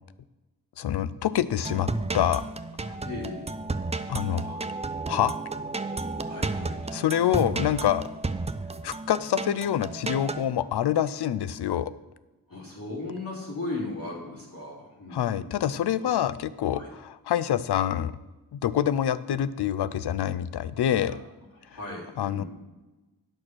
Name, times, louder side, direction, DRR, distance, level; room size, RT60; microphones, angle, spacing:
voice 1, 0.8-1.9 2.1-2.4 2.8-2.9 4.1-4.6 5.1-5.3 6.9-8.1 8.8-11.9 15.1-18.1 18.5-21.2 22.2-22.4, left 10 dB, 75° left, 15 dB, 0.5 m, -26 dB
sound 1, 1.6-10.5, right 3 dB, 15° right, 0.5 m, -32 dB
voice 2, 3.0-3.5 6.3-7.0 12.5-15.5 16.0-16.1 16.7-16.9 21.1-21.2 21.6-22.5, left 2 dB, 55° left, -6 dB, 3.5 m, -37 dB
8.8 x 6.4 x 6.1 m, 1.1 s
cardioid pair, 60°, 40 cm